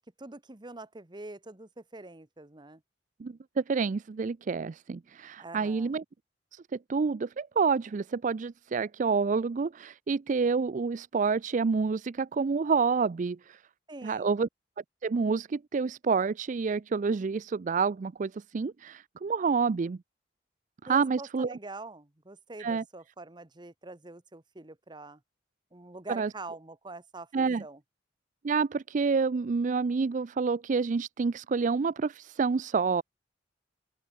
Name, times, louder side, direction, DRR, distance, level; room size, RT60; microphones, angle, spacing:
voice 1, 0.2-2.8 5.4-5.9 13.9-14.4 20.9-25.2 25.7-27.8, right 2 dB, 25° right, 1.2 m, -45 dB
voice 2, 3.2-6.0 6.5-6.6 6.9-13.6 14.0-14.5 15.0-20.0 20.8-21.6 22.6-22.8 26.2-26.3 27.3-27.6 28.4-33.0, right 5 dB, 40° right, 0.4 m, -28 dB
open air
head